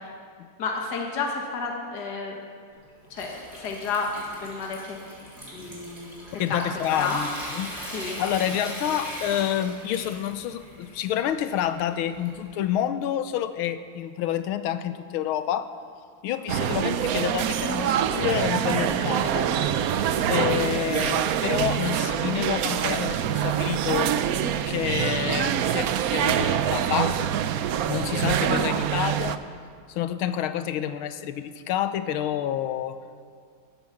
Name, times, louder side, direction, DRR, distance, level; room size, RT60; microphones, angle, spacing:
voice 1, 0.6-2.4 3.1-5.0 5.5-6.6 6.9-7.2 7.9-8.2 16.6-16.8, left 4 dB, 55° left, 0 dB, 2.1 m, -31 dB
Water tap faucet / Sink (filling or washing) / Trickle dribble, 2.7-12.6, right 1 dB, 30° right, 3.9 m, -40 dB
voice 2, 5.5-5.9 6.4-7.7 8.2-15.7 16.2-19.5 20.3-24.1 24.7-27.2 27.9-29.4 29.9-33.0, left 10 dB, 85° left, 12 dB, 1.6 m, -28 dB
sound 1, 16.5-29.4, right 9 dB, 90° right, 0.8 m, -25 dB
15.5 x 11.5 x 7.1 m, 2.2 s
omnidirectional pair, 2.3 m